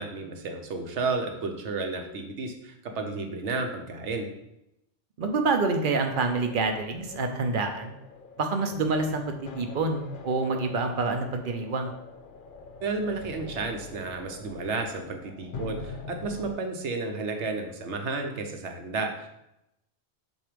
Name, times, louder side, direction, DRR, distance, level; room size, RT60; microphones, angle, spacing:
voice 1, 0.0-4.3 12.8-19.3, right 3 dB, 75° right, 4 dB, 1.1 m, -32 dB
sound 1, 5.2-16.5, left 4 dB, 55° left, 0.7 m, -44 dB
voice 2, 5.2-7.9 8.4-11.9, right 3 dB, 50° right, 5 dB, 0.8 m, -27 dB
7.6 x 2.7 x 5.1 m, 0.86 s
omnidirectional pair, 1.2 m